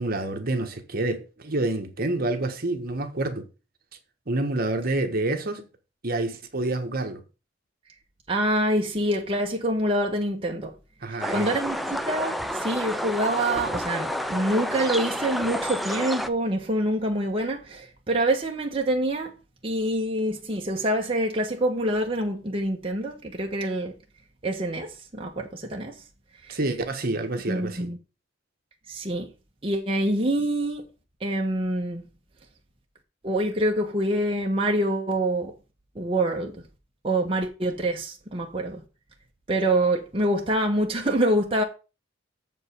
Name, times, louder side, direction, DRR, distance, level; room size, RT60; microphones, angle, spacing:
voice 1, 0.0-3.5 4.3-5.7 6.0-7.2 11.0-11.5 26.5-27.9, right 2 dB, 50° right, 1.4 m, -28 dB
voice 2, 8.3-10.7 11.1-19.3 19.6-23.9 24.4-26.0 26.4-26.6 27.5-28.0 28.9-29.3 29.6-30.8 31.2-32.1 33.2-35.5 35.9-36.5 37.0-38.8 39.5-41.6, right 1 dB, 30° right, 1.2 m, -26 dB
sound 1, 11.2-16.3, equal, ahead, 0.5 m, -30 dB
7.3 x 5.3 x 6.7 m
head